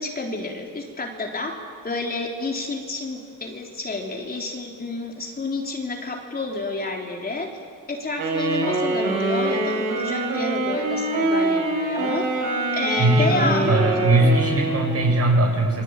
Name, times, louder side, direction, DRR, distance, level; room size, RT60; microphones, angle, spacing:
voice 1, 0.0-1.6 1.8-7.5 7.9-12.3 12.7-13.8, left 3 dB, 30° left, 1 dB, 3.8 m, -29 dB
Wind instrument woodwind instrument, 8.2-15.1, right 2 dB, 90° right, 7.5 m, -24 dB
voice 2, 13.0-15.8, right 1 dB, 50° right, 2 dB, 7.5 m, -20 dB
28.0 x 23.5 x 9.0 m, 2.1 s
cardioid pair, 115°, 31 cm